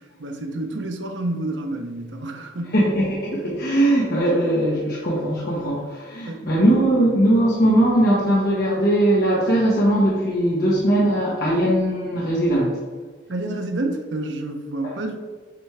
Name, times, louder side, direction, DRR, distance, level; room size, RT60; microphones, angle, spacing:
voice 1, 0.0-2.8 6.3-6.4 13.3-15.2, right 2 dB, 85° right, 4 dB, 0.8 m, -29 dB
voice 2, 2.7-12.7, right 1 dB, 60° left, -6 dB, 1.3 m, -20 dB
8.1 x 3.5 x 3.3 m, 1.5 s
head